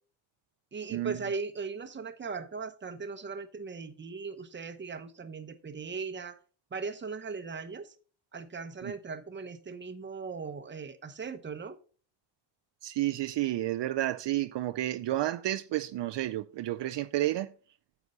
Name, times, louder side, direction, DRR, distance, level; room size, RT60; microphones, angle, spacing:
voice 1, 0.7-6.4 6.7-7.9 8.3-11.8, right 4 dB, 25° right, 1.0 m, -38 dB
voice 2, 12.8-17.5, right 14 dB, 60° right, 0.6 m, -31 dB
9.5 x 7.0 x 3.9 m
cardioid pair, 150°, 48 cm